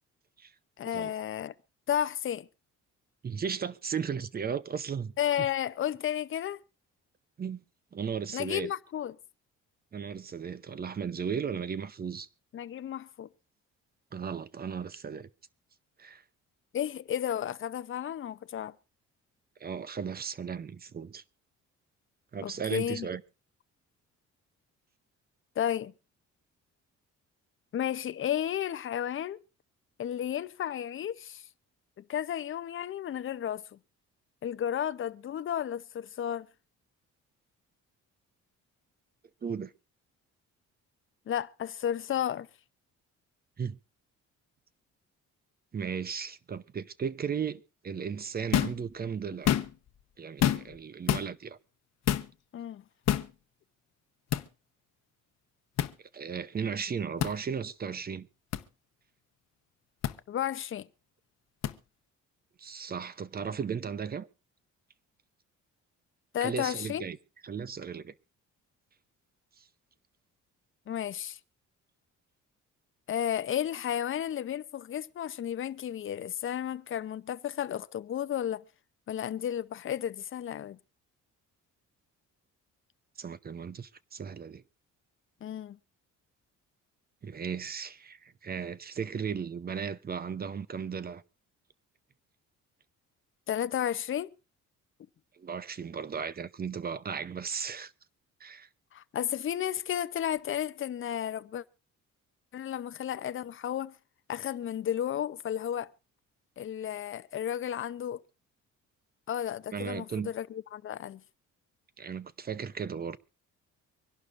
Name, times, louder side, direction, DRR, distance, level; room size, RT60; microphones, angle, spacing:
voice 1, 0.8-1.5 1.9-2.5 5.2-6.6 8.3-9.2 12.5-13.3 16.7-18.7 22.4-23.1 25.6-25.9 27.7-29.4 30.0-31.4 32.0-33.8 34.4-36.5 41.3-42.5 52.5-52.8 60.3-60.9 66.3-67.0 70.9-71.4 73.1-78.6 79.1-80.8 85.4-85.8 93.5-94.3 98.9-101.6 102.5-103.9 104.3-105.9 106.6-108.2 109.3-111.2, left 10 dB, 45° left, 0.7 m, -33 dB
voice 2, 3.2-5.1 7.4-7.6 7.9-8.7 9.9-12.3 14.1-15.3 16.0-16.2 19.6-21.2 22.3-23.2 39.4-39.7 43.6-43.8 45.7-49.6 50.2-51.6 56.1-58.3 62.6-64.3 66.4-67.2 67.4-68.1 83.2-84.6 87.2-91.2 95.4-97.9 98.4-98.7 109.7-110.3 112.0-113.2, right 6 dB, 30° right, 0.7 m, -36 dB
sound 1, 48.5-48.8 49.3-49.9 50.4-50.8 51.1-51.3 52.1-52.3 53.1-53.3 54.3-54.5 55.8-55.9 57.2-57.4 58.5-58.6 60.0-60.1 61.6-61.7, left 11 dB, 60° left, 1.0 m, -27 dB
25.0 x 11.5 x 2.5 m
cardioid pair, 120°, 30 cm